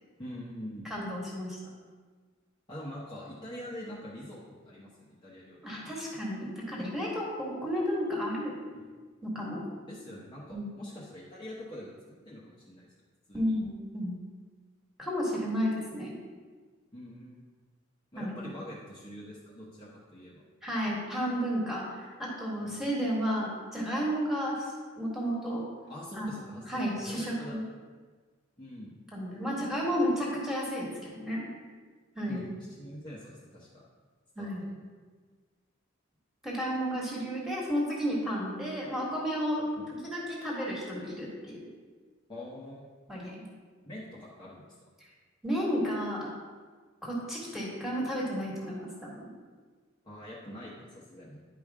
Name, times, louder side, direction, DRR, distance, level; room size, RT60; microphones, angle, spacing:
voice 1, 0.2-0.9 2.7-5.8 8.7-8.8 9.9-11.9 12.2-12.9 13.3-13.5 16.9-17.4 18.1-20.4 22.6-22.9 25.9-26.6 27.0-27.6 28.6-28.9 32.3-32.5 32.8-33.8 34.4-34.8 39.8-39.9 42.3-42.9 43.9-44.6 50.0-51.4, left 1 dB, 20° left, -7 dB, 1.0 m, -44 dB
voice 2, 0.9-1.6 5.6-8.6 9.2-9.7 10.5-10.7 13.3-14.2 15.0-16.1 18.1-18.3 20.6-25.7 26.1-27.6 29.1-31.5 32.2-32.4 34.4-34.6 36.4-41.7 43.1-43.4 45.4-46.3 47.0-49.3, equal, ahead, -5 dB, 1.7 m, -32 dB
10.5 x 5.1 x 3.6 m, 1.5 s
head